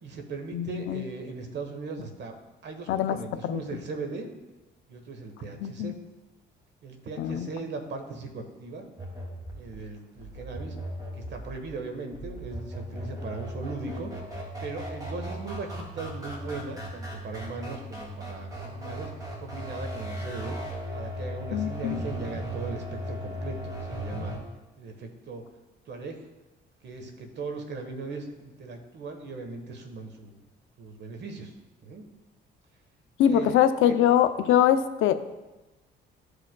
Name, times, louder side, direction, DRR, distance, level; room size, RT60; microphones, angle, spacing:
voice 1, 0.0-2.4 2.6-4.3 4.9-6.0 6.8-8.9 9.5-10.8 11.2-14.1 14.6-19.1 19.4-20.6 20.9-24.3 24.8-25.4 25.9-26.2 26.8-30.4 30.8-31.5 31.8-32.0 33.3-33.6 33.8-34.0, right 3 dB, 60° right, 5 dB, 1.3 m, -38 dB
voice 2, 0.5-1.0 2.9-3.2 3.5-3.6 5.6-5.9 7.2-7.5 21.5-22.0 33.2-35.1, left 10 dB, 85° left, 10 dB, 0.5 m, -23 dB
sound 1, 9.0-24.4, equal, 20° right, 2.2 m, -37 dB
13.5 x 4.9 x 2.2 m, 1.1 s
cardioid pair, 90°, 20 cm